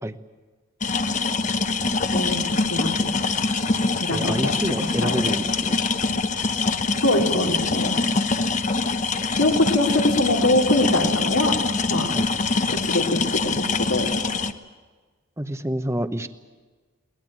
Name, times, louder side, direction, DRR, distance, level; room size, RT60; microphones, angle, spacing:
sound 1, 0.8-14.5, left 3 dB, 35° left, 0.9 m, -24 dB
voice 1, 2.1-3.2 4.0-4.5 4.8-5.4 7.0-8.0 9.4-11.6 11.9-12.1 12.7-14.1, left 1 dB, 80° left, 1 dB, 3.7 m, -23 dB
voice 2, 4.1-5.7 12.1-12.2 15.4-16.4, right 1 dB, 15° right, 9 dB, 0.9 m, -28 dB
21.5 x 20.0 x 9.0 m, 1.4 s
head